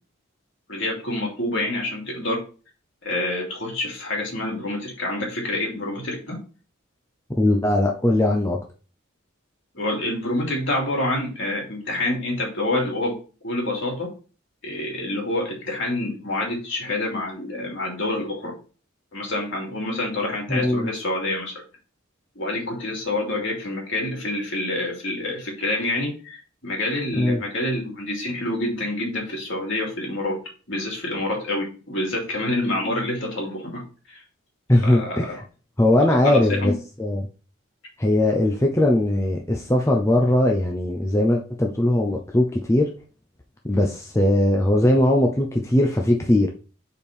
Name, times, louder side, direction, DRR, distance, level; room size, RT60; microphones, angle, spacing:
voice 1, 0.7-2.4 3.0-6.4 9.7-13.2 13.4-14.1 14.6-18.6 19.1-21.6 22.3-30.4 30.7-33.8 34.1-34.2 34.8-35.4 36.2-36.7, left 1 dB, 60° left, -1 dB, 2.7 m, -27 dB
voice 2, 7.4-8.6 20.5-20.9 27.2-27.4 34.7-35.4 35.8-36.7 37.0-37.3 38.0-42.9 43.7-46.5, left 1 dB, 15° left, 0 dB, 0.6 m, -20 dB
5.1 x 4.5 x 5.3 m, 0.36 s
head